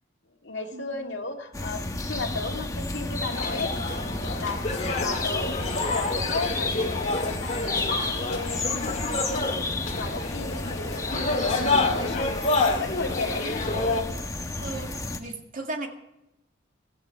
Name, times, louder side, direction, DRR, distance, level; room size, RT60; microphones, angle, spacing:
voice 1, 0.4-3.7 4.3-4.7 5.0-5.6 5.9-12.5 12.8-13.7 15.2-15.3, left 3 dB, 65° left, -1 dB, 2.1 m, -35 dB
sound 1, 1.5-15.2, left 2 dB, 15° left, 1.1 m, -32 dB
sound 2, 3.3-14.0, left 3 dB, 35° left, 2.2 m, -28 dB
voice 2, 14.6-14.9 15.2-15.9, right 2 dB, 45° right, 3 dB, 2.1 m, -35 dB
17.0 x 14.0 x 4.6 m, 0.91 s
head